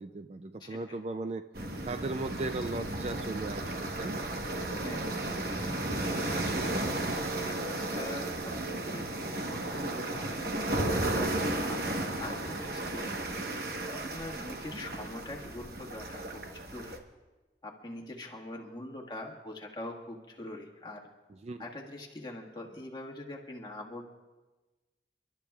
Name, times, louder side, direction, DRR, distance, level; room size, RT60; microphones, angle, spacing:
voice 1, 0.0-1.5 1.9-4.3 21.3-21.6, right 2 dB, 35° right, 9 dB, 0.3 m, -37 dB
voice 2, 0.6-1.0 4.8-5.6 6.2-10.6 11.2-13.1 14.1-17.0 17.6-21.0 21.6-24.2, left 1 dB, 25° left, -1 dB, 1.6 m, -43 dB
sound 1, 1.5-17.0, right 1 dB, 55° right, 1.1 m, -34 dB
30.0 x 12.5 x 2.3 m, 1.2 s
head